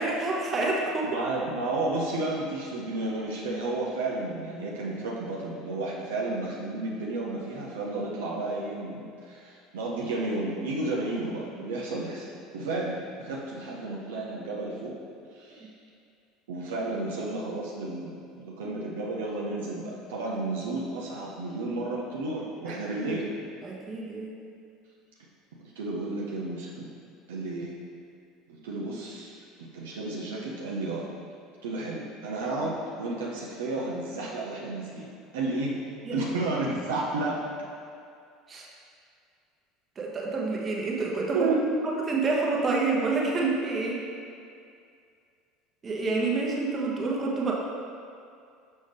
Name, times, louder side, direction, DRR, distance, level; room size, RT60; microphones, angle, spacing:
voice 1, 0.0-1.2 22.7-22.8 23.6-24.3 36.0-36.3 38.5-38.7 40.0-41.5 42.1-44.0 45.8-47.5, right 3 dB, 30° right, -2 dB, 1.1 m, -28 dB
voice 2, 1.0-14.9 15.3-15.7 16.5-23.3 25.6-26.9 27.3-27.8 28.5-31.1 31.6-35.8 36.1-37.4 41.3-41.8, right 2 dB, 70° right, -4 dB, 0.7 m, -32 dB
6.3 x 5.3 x 3.4 m, 2.4 s
figure-of-eight pair, 65°, 0 cm